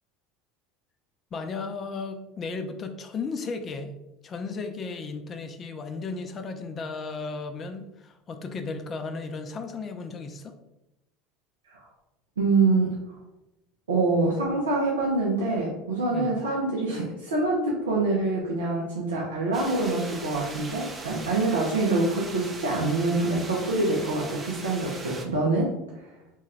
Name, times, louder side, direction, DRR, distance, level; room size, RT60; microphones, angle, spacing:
voice 1, 1.3-3.9 4.2-10.5 16.1-16.3, left 4 dB, 35° left, 6 dB, 0.4 m, -35 dB
voice 2, 12.4-13.2 13.9-25.7, right 3 dB, 85° right, -3 dB, 0.5 m, -25 dB
sound 1, 19.5-25.3, right 3 dB, 25° right, 0.5 m, -40 dB
2.9 x 2.2 x 3.2 m, 0.91 s
hypercardioid pair, 75°, 0 cm